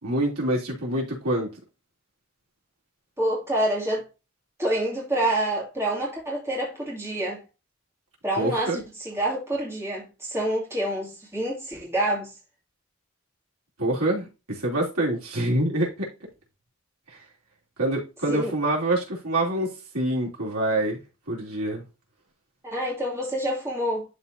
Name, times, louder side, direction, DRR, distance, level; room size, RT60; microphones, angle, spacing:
voice 1, 0.0-1.5 8.3-8.8 13.8-16.1 17.1-17.2 17.8-21.0 21.3-21.8, right 1 dB, 90° right, 2.9 m, -26 dB
voice 2, 3.2-4.0 4.6-7.4 8.2-12.3 18.3-18.5 22.6-24.0, right 1 dB, 10° right, 2.3 m, -27 dB
11.0 x 4.1 x 2.6 m
head